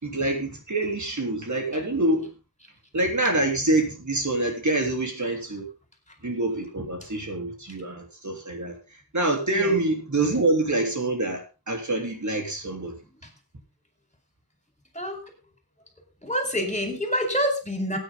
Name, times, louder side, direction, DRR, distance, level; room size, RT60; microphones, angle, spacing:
voice 1, 0.0-2.3 2.9-5.7 6.2-12.9, right 2 dB, 50° right, 3.5 m, -26 dB
voice 2, 16.2-18.0, equal, 20° left, 4.6 m, -27 dB
16.5 x 9.5 x 3.8 m
wide cardioid pair, 60°, 37 cm